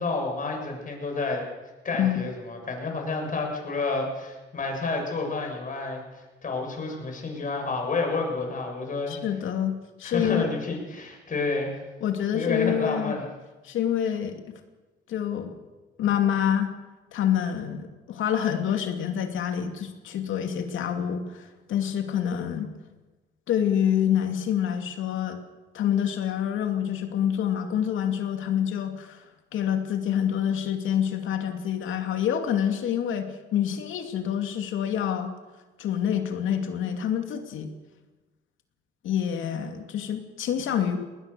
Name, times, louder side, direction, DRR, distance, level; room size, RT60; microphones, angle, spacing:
voice 1, 0.0-1.4 1.8-9.2 10.0-11.8 12.3-13.3, left 3 dB, 40° left, 2 dB, 7.0 m, -30 dB
voice 2, 9.1-9.7 10.0-10.7 12.0-13.2 13.6-14.4 15.1-15.6 16.0-16.7 17.1-22.7 23.5-25.4 25.7-29.2 29.5-35.3 35.8-37.7 39.0-41.0, left 9 dB, 80° left, 6 dB, 2.6 m, -27 dB
20.0 x 20.0 x 6.9 m, 1.2 s
cardioid pair, 90°, 20 cm